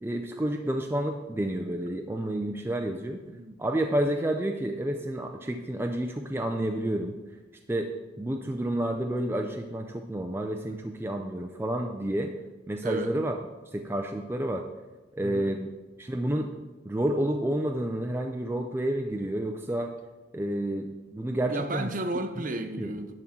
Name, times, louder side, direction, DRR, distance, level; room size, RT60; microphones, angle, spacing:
voice 1, 0.0-3.2 3.6-7.1 7.7-7.9 8.2-12.3 12.7-13.3 13.7-14.6 15.1-15.7 16.0-16.5 16.8-19.9 20.3-21.9 22.4-22.5 22.8-22.9, right 1 dB, 10° right, 3 dB, 0.4 m, -30 dB
voice 2, 12.8-13.1 15.2-15.5 21.5-23.1, right 2 dB, 45° right, 6 dB, 0.7 m, -33 dB
11.0 x 3.7 x 5.9 m, 1.2 s
head